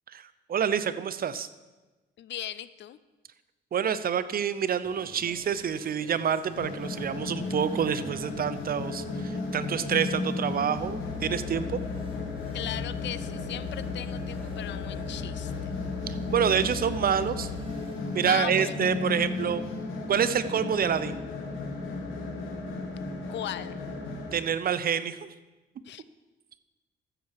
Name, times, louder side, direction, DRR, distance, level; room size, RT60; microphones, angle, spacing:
voice 1, 0.5-1.5 3.7-9.0 9.5-11.8 16.1-17.5 18.1-19.6 20.1-21.2 24.3-25.3, right 8 dB, 50° right, 14 dB, 0.6 m, -27 dB
voice 2, 2.2-3.0 12.5-15.7 18.3-18.9 23.3-23.8 25.9-26.0, left 12 dB, 65° left, 16 dB, 0.5 m, -37 dB
sound 1, 4.8-18.6, right 2 dB, 25° right, 1.8 m, -52 dB
sound 2, 6.6-24.3, left 2 dB, 85° left, 2.0 m, -35 dB
sound 3, 10.7-17.6, left 10 dB, 40° left, 1.8 m, -39 dB
14.0 x 7.4 x 4.8 m, 1.2 s
cardioid pair, 90°, 20 cm